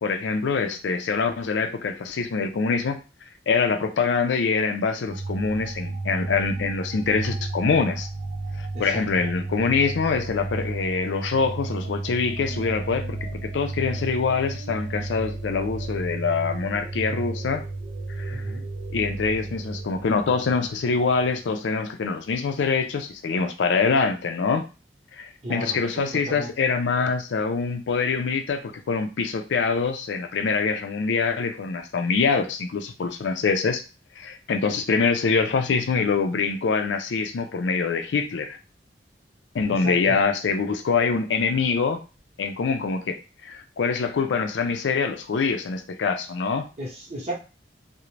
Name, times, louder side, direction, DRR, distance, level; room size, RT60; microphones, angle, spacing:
voice 1, 0.0-3.0 3.5-8.1 8.6-17.7 18.1-18.5 18.9-24.7 25.1-33.8 34.2-38.6 39.5-42.0 42.4-46.7, left 5 dB, 90° left, 7 dB, 0.4 m, -25 dB
sound 1, 5.1-21.4, right 2 dB, 50° right, 0.3 m, -33 dB
voice 2, 8.7-9.2 18.3-18.7 25.4-26.5 39.7-40.2 46.8-47.3, equal, 35° right, -3 dB, 0.8 m, -35 dB
2.5 x 2.0 x 3.1 m, 0.32 s
head